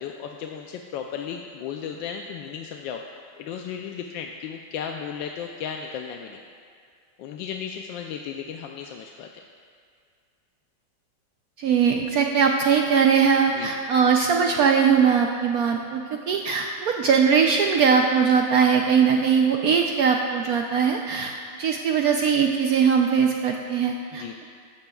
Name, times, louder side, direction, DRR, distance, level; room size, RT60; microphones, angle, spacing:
voice 1, 0.0-3.0 3.4-6.4 7.2-9.3 13.5-13.7 24.1-24.3, left 7 dB, 90° left, 2 dB, 1.3 m, -35 dB
voice 2, 11.6-21.3 21.6-24.5, right 6 dB, 70° right, 2 dB, 0.9 m, -21 dB
15.0 x 13.0 x 2.3 m, 2.1 s
omnidirectional pair, 2.0 m